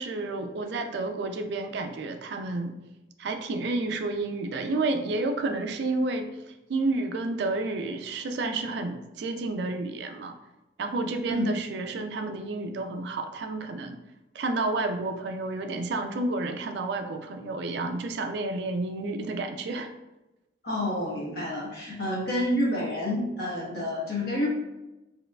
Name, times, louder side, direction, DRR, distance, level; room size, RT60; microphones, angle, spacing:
voice 1, 0.0-2.7 3.2-10.4 10.8-14.0 14.3-19.9, right 2 dB, 55° right, 6 dB, 0.3 m, -30 dB
voice 2, 20.6-24.5, left 1 dB, 55° left, -4 dB, 1.0 m, -28 dB
4.4 x 2.3 x 2.2 m, 1.0 s
head